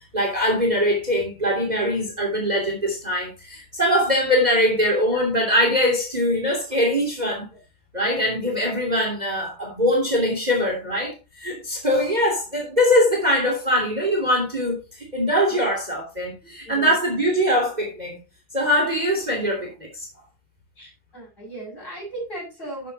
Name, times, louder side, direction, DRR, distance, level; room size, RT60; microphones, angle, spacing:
voice 1, 0.1-7.5 7.9-18.2 18.5-20.1, equal, 20° right, 3.1 m, -22 dB
voice 2, 16.4-16.9 20.8-22.9, right 2 dB, 25° left, 7.0 m, -37 dB
13.0 x 7.7 x 2.9 m
omnidirectional pair, 2.1 m